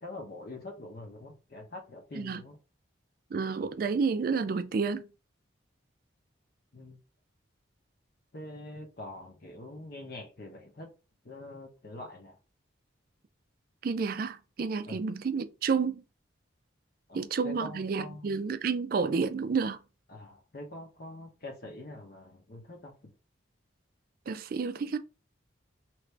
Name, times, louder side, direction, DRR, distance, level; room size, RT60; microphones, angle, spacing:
voice 1, 0.0-2.6 6.7-7.0 8.3-10.9 11.2-12.4 14.9-15.0 17.1-18.4 20.1-23.1, left 2 dB, 50° left, 0.9 m, -44 dB
voice 2, 3.3-5.1 13.8-16.0 17.1-19.8 24.3-25.0, right 5 dB, 45° right, 0.3 m, -30 dB
2.9 x 2.6 x 3.3 m
head